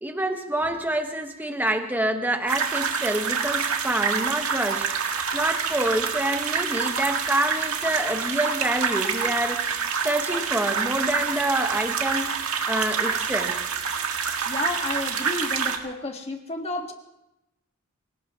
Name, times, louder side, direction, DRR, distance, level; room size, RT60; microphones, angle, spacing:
voice 1, 0.0-4.9 5.3-9.6 10.0-12.4 12.7-13.6, right 1 dB, 10° right, 4 dB, 1.3 m, -27 dB
sound 1, 2.5-15.8, right 6 dB, 90° right, 1.8 m, -27 dB
voice 2, 14.5-16.9, left 2 dB, 30° left, 3 dB, 1.6 m, -31 dB
25.5 x 18.0 x 3.0 m, 0.88 s
head